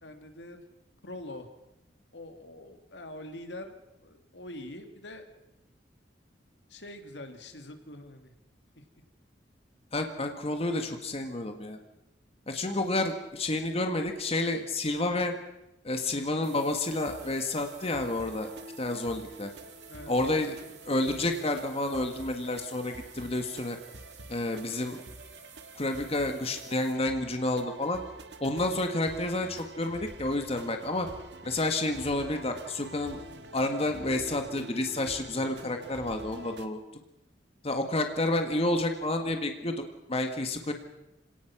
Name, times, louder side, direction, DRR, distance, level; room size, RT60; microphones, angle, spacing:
voice 1, 0.0-0.6 1.0-1.5 2.1-5.3 6.7-8.3 8.8-8.9 19.9-20.2, left 1 dB, 75° left, 6 dB, 2.3 m, -44 dB
voice 2, 9.9-11.8 12.5-15.3 15.8-18.5 18.8-19.5 20.1-20.6 20.8-23.8 24.3-25.0 25.8-28.0 28.4-31.1 31.4-33.2 33.5-37.0 37.6-40.7, left 2 dB, 35° left, 5 dB, 1.6 m, -30 dB
sound 1, 16.4-26.9, right 8 dB, 40° right, 3.0 m, -53 dB
sound 2, 16.9-36.7, right 1 dB, 70° right, 1.6 m, -47 dB
26.5 x 18.0 x 6.0 m, 0.89 s
head